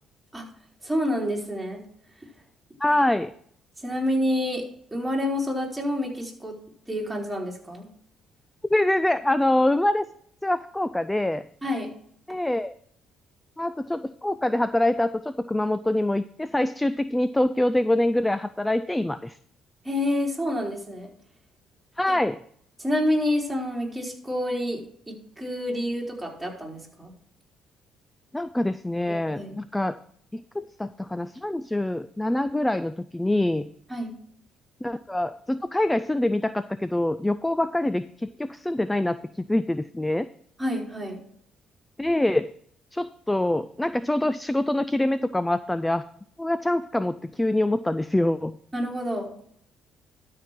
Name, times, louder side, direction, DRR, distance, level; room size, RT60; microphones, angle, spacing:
voice 1, 0.8-1.8 2.2-2.3 3.8-4.6 4.9-6.6 6.9-7.9 11.6-11.9 19.8-21.1 22.1-22.2 22.8-27.1 29.1-29.6 33.9-34.1 40.6-41.2 48.7-49.3, left 1 dB, 10° right, -2 dB, 3.9 m, -28 dB
voice 2, 2.8-3.3 8.7-10.0 10.4-11.5 12.3-12.7 13.6-19.4 22.0-22.4 28.3-30.0 30.3-33.7 34.8-40.3 42.0-42.5 42.9-46.0 46.4-48.6, left 1 dB, 10° left, 14 dB, 0.4 m, -25 dB
12.5 x 4.8 x 5.8 m, 0.63 s
supercardioid pair, 75°, 0 cm